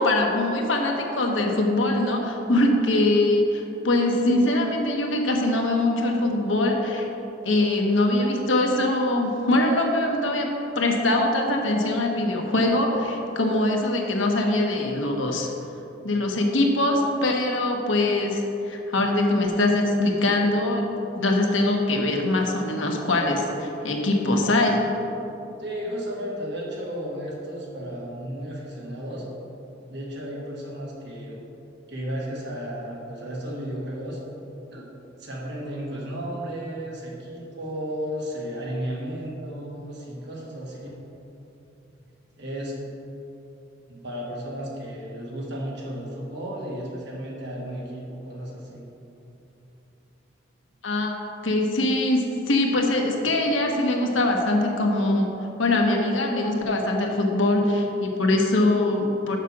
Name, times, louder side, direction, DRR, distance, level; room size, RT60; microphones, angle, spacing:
voice 1, 0.0-7.1 7.4-10.5 10.7-15.5 16.0-24.8 50.8-51.1 51.4-55.3 55.6-59.4, left 1 dB, 80° left, 1 dB, 1.1 m, -22 dB
voice 2, 25.6-29.2 29.9-31.4 31.9-34.2 34.7-34.9 35.2-40.9 42.4-42.8 43.9-48.8, equal, 60° right, -4 dB, 1.8 m, -33 dB
6.6 x 5.9 x 6.2 m, 3.0 s
head